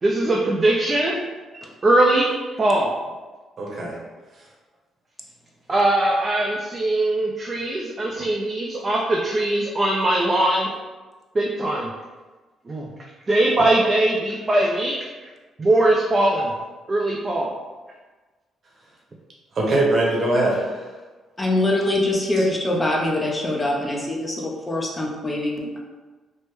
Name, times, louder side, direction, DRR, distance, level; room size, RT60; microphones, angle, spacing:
voice 1, 0.0-1.2 1.8-2.3 2.6-2.9 5.7-10.7 11.3-11.9 12.7-12.9 13.3-15.1 15.6-16.5 16.9-17.5, right 1 dB, 30° right, -2 dB, 0.4 m, -20 dB
voice 2, 3.6-4.0 19.5-20.9 22.4-22.5, right 2 dB, 50° right, -3 dB, 0.9 m, -22 dB
voice 3, 21.4-25.8, left 1 dB, 20° left, -2 dB, 0.6 m, -23 dB
3.2 x 2.1 x 3.1 m, 1.3 s
cardioid pair, 90°, 0 cm